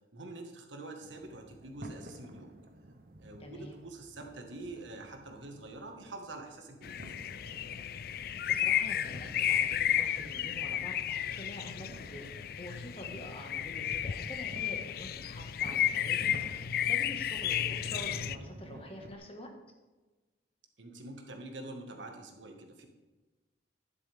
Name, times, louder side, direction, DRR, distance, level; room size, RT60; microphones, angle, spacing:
voice 1, 0.1-2.6 3.2-7.2 13.1-13.2 20.8-22.9, right 2 dB, 85° right, 3 dB, 1.6 m, -46 dB
sound 1, 1.0-19.2, right 1 dB, 50° right, 0.8 m, -51 dB
voice 2, 3.4-3.8 8.5-12.2 12.6-16.3 16.9-19.5, left 1 dB, 30° left, 2 dB, 1.6 m, -46 dB
sound 2, 6.8-18.4, left 10 dB, 50° left, 0.3 m, -33 dB
11.0 x 11.0 x 3.5 m, 1.2 s
head